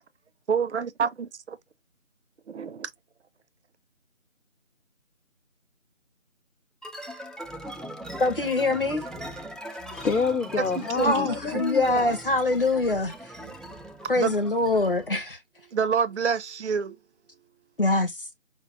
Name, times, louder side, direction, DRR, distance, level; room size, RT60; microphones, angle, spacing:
voice 1, 0.5-1.6 2.5-2.9 11.0-11.3 13.4-13.6 14.2-14.3 15.7-17.0, right 6 dB, 60° right, 0.5 m, -27 dB
sound 1, 6.8-15.1, right 1 dB, ahead, 0.3 m, -40 dB
voice 2, 8.2-9.1 11.0-13.3 14.1-15.4 17.8-18.3, left 2 dB, 45° left, 0.9 m, -24 dB
voice 3, 9.7-12.2, left 5 dB, 85° left, 0.7 m, -28 dB
5.1 x 2.0 x 2.6 m
figure-of-eight pair, 170°, 40 cm